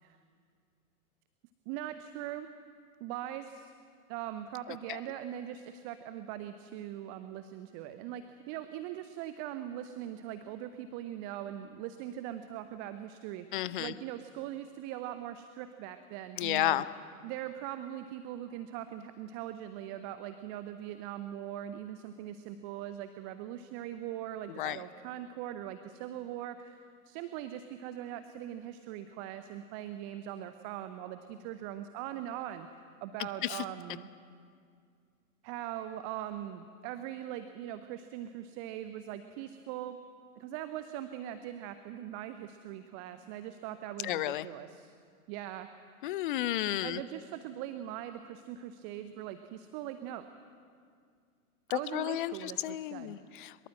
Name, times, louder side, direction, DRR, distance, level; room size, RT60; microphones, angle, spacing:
voice 1, 1.7-2.5 3.0-3.7 4.1-16.9 17.2-32.7 33.0-34.1 35.4-40.0 40.4-44.9 45.3-45.7 46.8-50.2 51.7-53.1, right 11 dB, 25° right, 10 dB, 0.7 m, -41 dB
voice 2, 4.7-5.0 13.5-13.9 16.4-16.8 24.6-24.8 33.4-33.6 44.0-44.5 46.0-47.0 51.7-53.7, left 14 dB, 35° left, 17 dB, 0.7 m, -32 dB
23.0 x 22.0 x 7.6 m, 2.2 s
figure-of-eight pair, 105°, 45 cm